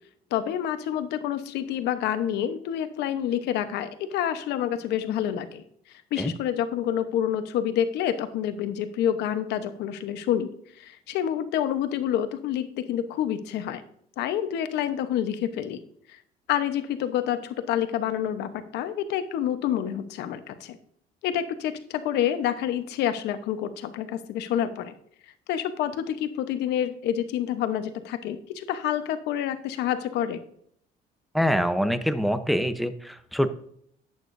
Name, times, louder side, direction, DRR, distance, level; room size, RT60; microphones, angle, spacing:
voice 1, 0.3-5.6 6.1-13.8 14.2-15.8 16.1-16.2 16.5-20.8 21.2-24.9 25.5-30.4, left 10 dB, 85° left, 10 dB, 1.0 m, -28 dB
voice 2, 31.3-33.5, equal, ahead, 11 dB, 0.8 m, -25 dB
11.5 x 9.1 x 2.7 m, 0.67 s
cardioid pair, 110°, 17 cm